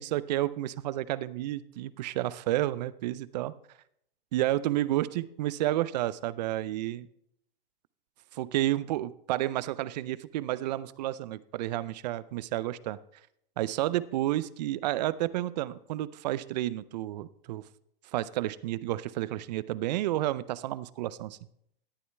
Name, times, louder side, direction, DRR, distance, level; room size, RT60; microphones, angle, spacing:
voice 1, 0.0-3.5 4.3-7.1 8.3-13.0 13.6-17.6 18.1-21.4, right 15 dB, 45° right, 18 dB, 0.5 m, -31 dB
18.5 x 11.0 x 2.2 m, 0.73 s
hypercardioid pair, 120°, 30 cm